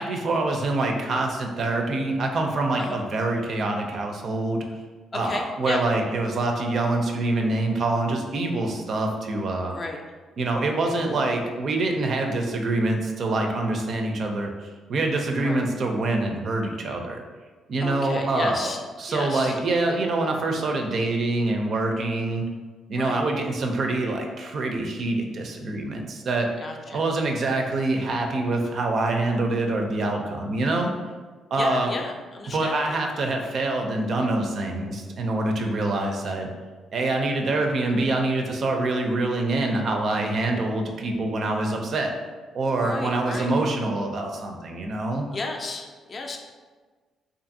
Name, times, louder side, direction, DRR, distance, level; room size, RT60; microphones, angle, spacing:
voice 1, 0.0-4.6 5.1-9.8 10.4-17.2 17.7-18.7 19.0-22.4 22.9-26.5 26.9-30.9 31.5-31.9 32.5-36.5 36.9-42.1 42.5-45.3, right 2 dB, 55° right, 3 dB, 0.4 m, -25 dB
voice 2, 5.1-5.8 9.7-10.0 15.4-15.6 17.8-18.8 19.1-19.6 22.9-23.2 26.6-27.0 31.5-33.0 42.7-43.5 45.3-46.4, left 3 dB, 40° left, 2 dB, 0.4 m, -33 dB
2.6 x 2.5 x 2.6 m, 1.4 s
cardioid pair, 90°, 0 cm